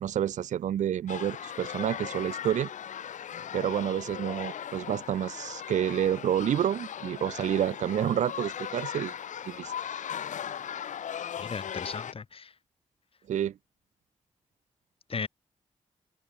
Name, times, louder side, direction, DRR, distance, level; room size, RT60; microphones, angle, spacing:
voice 1, 0.0-2.7 3.5-9.1 9.5-9.7 13.3-13.5, right 10 dB, 75° right, 0.5 m, -29 dB
sound 1, 1.1-12.1, left 9 dB, 80° left, 1.3 m, -38 dB
voice 2, 11.4-12.5 15.1-15.3, left 5 dB, 50° left, 0.8 m, -36 dB
open air
supercardioid pair, 45°, 13 cm